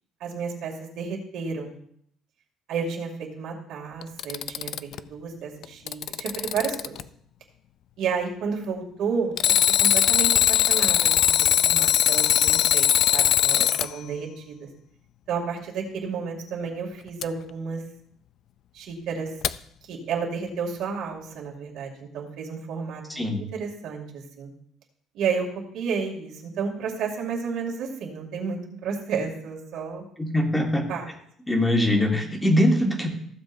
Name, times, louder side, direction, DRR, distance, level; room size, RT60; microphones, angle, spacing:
voice 1, 0.2-1.8 2.7-7.0 8.0-14.7 15.3-17.8 18.7-19.3 19.9-24.5 25.1-25.5 25.7-30.0 30.9-31.1, right 5 dB, 70° right, -1 dB, 2.5 m, -31 dB
Alarm, 4.0-5.0 5.6-7.0 9.4-13.9 17.2-17.3 19.4-19.5, left 11 dB, 60° left, 0.3 m, -20 dB
voice 2, 23.1-23.4 30.2-30.8 31.5-33.1, left 1 dB, 10° left, 2 dB, 1.6 m, -22 dB
15.0 x 7.5 x 2.6 m, 0.66 s
cardioid pair, 125°, 0 cm